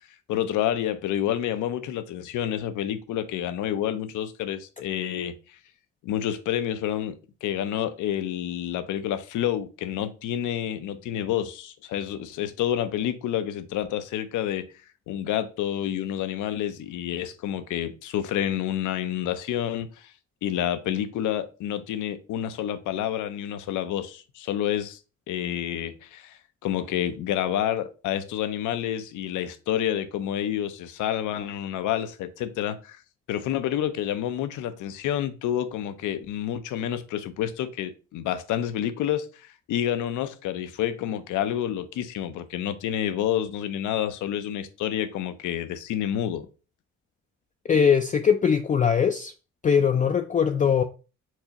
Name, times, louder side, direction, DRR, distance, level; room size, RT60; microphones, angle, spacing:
voice 1, 0.3-5.6 6.0-14.7 15.1-20.1 20.4-25.0 25.3-33.0 33.3-46.5, left 11 dB, 85° left, 0.6 m, -29 dB
voice 2, 47.7-49.3 49.6-50.8, left 7 dB, 25° left, 0.3 m, -21 dB
4.6 x 3.9 x 2.9 m
cardioid pair, 90°, 30 cm